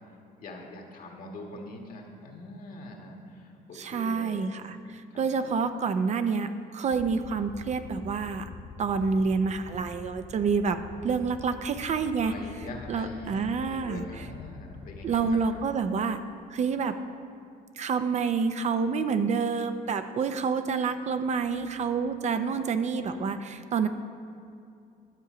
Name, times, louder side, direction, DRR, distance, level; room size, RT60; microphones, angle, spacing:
voice 1, 0.4-4.5 5.1-5.5 12.2-15.4, left 2 dB, 55° left, 1 dB, 1.6 m, -43 dB
voice 2, 3.7-8.5 8.8-10.8 11.0-12.3 12.9-14.3 15.0-16.2 16.5-16.9 17.8-23.9, right 5 dB, 45° right, 9 dB, 0.5 m, -28 dB
sound 1, 6.9-15.7, left 5 dB, 25° left, 0.6 m, -45 dB
11.0 x 7.0 x 5.0 m, 2.5 s
cardioid pair, 110°, 17 cm